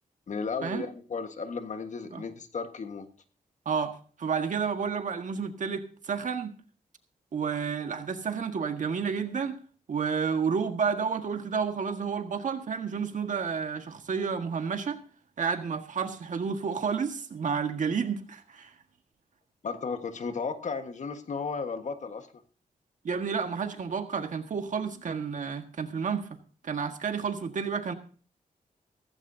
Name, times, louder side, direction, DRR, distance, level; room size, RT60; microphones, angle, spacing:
voice 1, 0.3-3.1 19.6-22.3, left 5 dB, 55° left, 1.5 m, -34 dB
voice 2, 3.6-6.5 7.3-9.6 9.9-15.0 15.4-18.7 23.0-26.3 26.6-27.9, right 6 dB, 60° right, 1.7 m, -30 dB
16.5 x 15.0 x 2.8 m
cardioid pair, 95°, 14 cm